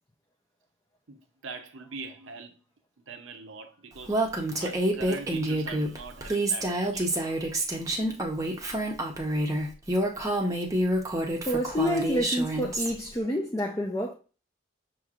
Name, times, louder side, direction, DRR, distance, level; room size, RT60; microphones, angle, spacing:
voice 1, 1.1-2.6 3.1-4.2 4.6-7.7, right 4 dB, 80° right, 0.7 m, -42 dB
Female speech woman speaking, 4.1-12.9, right 1 dB, 15° right, 0.7 m, -28 dB
voice 2, 11.4-14.1, equal, 15° left, 0.5 m, -28 dB
6.3 x 3.0 x 2.5 m
head